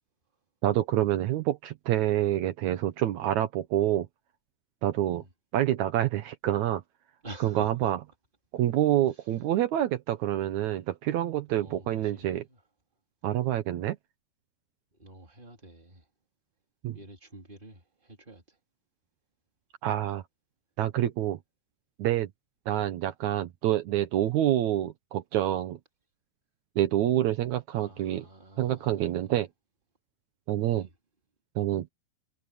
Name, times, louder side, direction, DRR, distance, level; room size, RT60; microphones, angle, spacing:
voice 1, 0.6-4.1 4.8-5.2 5.5-6.8 7.4-8.0 8.5-12.4 13.2-14.0 16.8-17.0 19.8-20.2 20.8-21.4 22.0-22.3 22.7-25.8 26.7-28.2 28.6-29.5 30.5-30.9 31.5-31.9, right 12 dB, 80° right, 1.6 m, -27 dB
voice 2, 7.2-7.9 11.5-12.6 14.9-16.1 16.9-18.6 27.8-29.4 30.7-30.9, right 1 dB, 10° right, 3.7 m, -48 dB
omnidirectional pair, 4.8 m